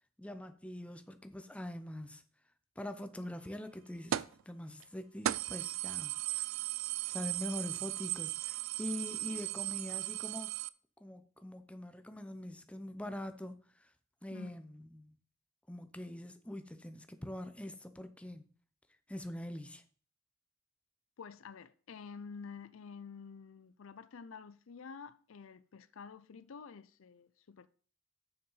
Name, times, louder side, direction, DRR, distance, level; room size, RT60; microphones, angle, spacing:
voice 1, 0.2-2.2 2.8-6.5 7.1-10.5 11.0-13.9 14.2-15.1 15.7-18.5 19.1-19.8, left 1 dB, 5° left, 0.6 m, -44 dB
sound 1, 4.1-4.4 4.8-4.9 5.2-10.7, right 14 dB, 65° right, 0.3 m, -37 dB
voice 2, 21.2-27.7, left 5 dB, 65° left, 0.5 m, -49 dB
7.2 x 6.1 x 5.5 m
head